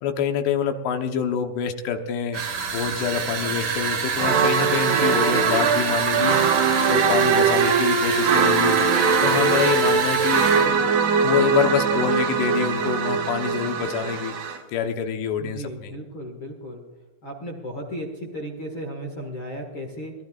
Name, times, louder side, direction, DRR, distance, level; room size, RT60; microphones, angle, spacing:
voice 1, 0.0-2.4 2.7-6.4 6.9-8.8 9.2-10.5 11.2-14.3 14.7-15.9, left 7 dB, 75° left, 5 dB, 2.9 m, -26 dB
sound 1, 2.3-10.7, right 6 dB, 85° right, 1.1 m, -27 dB
sound 2, 4.2-14.6, right 5 dB, 55° right, 2.8 m, -21 dB
voice 2, 10.5-10.9 15.4-16.8 17.2-20.1, equal, 55° left, 2 dB, 1.4 m, -35 dB
23.5 x 17.5 x 2.4 m, 1.2 s
omnidirectional pair, 5.2 m